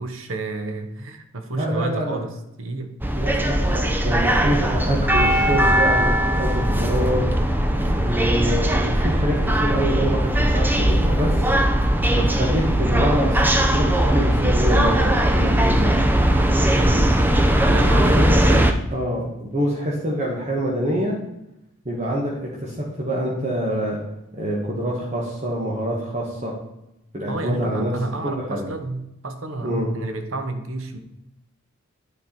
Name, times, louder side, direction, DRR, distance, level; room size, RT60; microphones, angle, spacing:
voice 1, 0.0-3.0 6.2-6.3 12.1-12.3 16.8-17.2 17.7-18.8 27.3-31.0, right 2 dB, 70° right, 7 dB, 0.9 m, -30 dB
voice 2, 1.5-2.2 3.1-7.3 8.0-11.4 12.1-16.1 18.2-18.4 18.9-21.2 21.8-24.0 24.3-26.5 27.1-27.9 28.2-28.7 29.6-29.9, equal, 35° right, -3 dB, 1.4 m, -25 dB
sound 1, 3.0-18.7, right 1 dB, 10° right, 0.5 m, -19 dB
9.7 x 4.8 x 4.4 m, 0.88 s
head